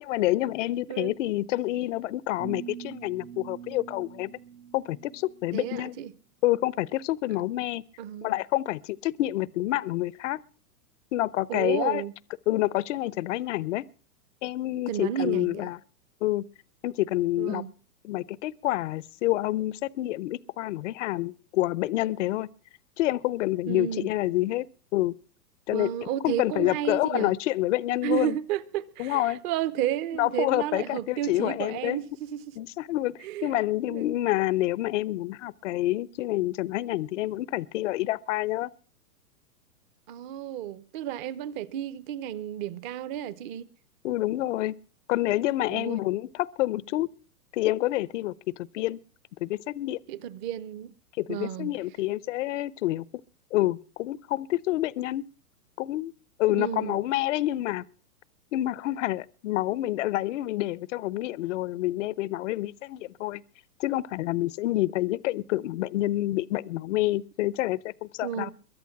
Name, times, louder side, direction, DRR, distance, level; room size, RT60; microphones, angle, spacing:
voice 1, 0.1-4.4 4.7-6.0 6.4-7.8 8.2-10.4 11.1-12.0 12.5-13.8 14.4-15.8 16.2-16.4 16.8-17.6 18.0-22.5 23.0-24.7 24.9-25.2 25.7-25.9 26.2-28.4 29.0-29.4 30.2-32.0 32.6-38.7 44.0-44.7 45.1-47.1 47.5-49.0 49.4-50.0 51.2-53.1 53.5-55.2 55.8-56.1 56.4-57.9 58.5-63.4 63.8-68.5, left 16 dB, 50° left, 0.6 m, -28 dB
sound 1, 2.4-5.5, right 9 dB, 90° right, 1.8 m, -43 dB
voice 2, 5.5-6.1 8.0-8.3 11.5-12.1 14.9-15.7 17.4-17.7 23.7-24.1 25.7-27.4 28.0-32.6 33.2-33.6 33.9-34.0 40.1-43.7 45.7-46.0 50.1-50.9 51.3-51.7 56.5-57.0 68.2-68.5, right 11 dB, 30° right, 0.8 m, -32 dB
22.5 x 8.2 x 5.8 m
hypercardioid pair, 135°, 47 cm